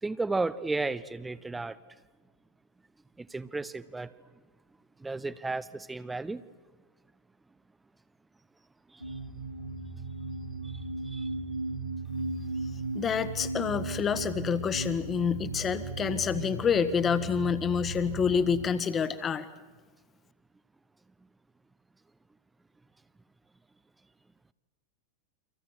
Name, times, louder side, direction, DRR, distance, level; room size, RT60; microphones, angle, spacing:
voice 1, 0.0-1.8 3.2-4.1 5.0-6.4 8.9-9.2 10.6-11.3, right 3 dB, 10° right, 0.8 m, -34 dB
sound 1, 9.0-18.7, right 3 dB, 90° right, 3.0 m, -36 dB
voice 2, 12.9-19.5, left 6 dB, 25° left, 1.6 m, -28 dB
30.0 x 25.5 x 6.3 m
figure-of-eight pair, 90°, 0 cm